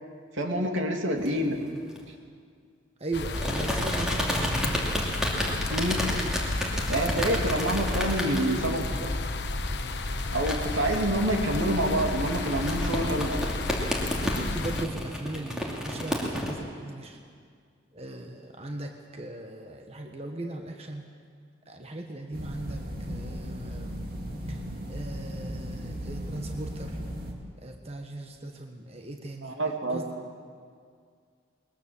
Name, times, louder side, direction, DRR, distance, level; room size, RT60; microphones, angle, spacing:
voice 1, 0.3-1.6 5.5-6.0 6.5-6.6 6.9-9.1 10.3-13.4 29.4-30.0, right 1 dB, 85° right, 2 dB, 2.7 m, -27 dB
sound 1, 1.2-2.0 3.3-16.5, equal, 5° right, 2.7 m, -32 dB
voice 2, 3.0-5.1 14.5-17.2 17.9-21.0 21.7-24.0 24.5-24.6 24.9-27.0 27.6-29.5 29.9-30.0, right 2 dB, 30° right, 3 dB, 1.3 m, -38 dB
sound 2, 3.1-14.9, left 2 dB, 60° left, 1.1 m, -32 dB
sound 3, 22.3-27.3, equal, 50° right, 2.6 m, -36 dB
21.0 x 20.5 x 7.2 m, 2.1 s
head